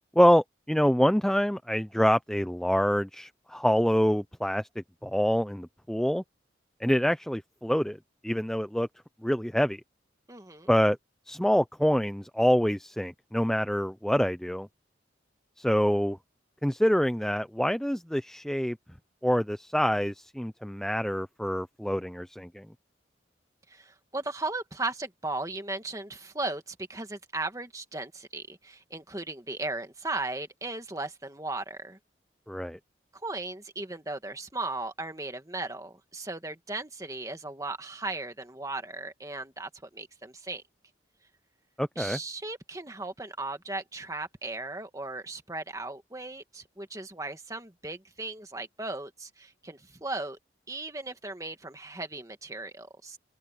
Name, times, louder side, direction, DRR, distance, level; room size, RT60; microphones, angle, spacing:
voice 1, 0.2-4.7 5.0-6.2 6.8-8.0 8.2-8.9 9.2-9.8 10.7-11.0 11.3-14.7 15.6-16.2 16.6-18.8 19.2-22.7 32.5-32.8 41.8-42.2, equal, 5° left, 0.4 m, -26 dB
voice 2, 10.3-10.7 23.7-32.0 33.2-40.6 42.0-50.4 50.7-53.2, right 2 dB, 20° right, 1.9 m, -37 dB
open air
head